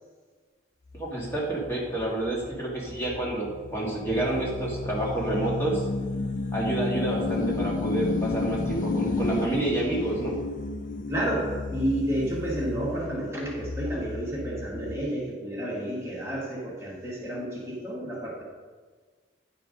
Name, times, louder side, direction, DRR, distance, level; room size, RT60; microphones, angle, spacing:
sound 1, 0.9-15.1, left 3 dB, 45° left, 0.4 m, -32 dB
voice 1, 0.9-5.9 6.5-10.4, right 2 dB, 15° left, -5 dB, 2.0 m, -29 dB
voice 2, 11.1-18.4, right 1 dB, 15° right, -5 dB, 1.9 m, -30 dB
9.9 x 4.7 x 5.2 m, 1.5 s
head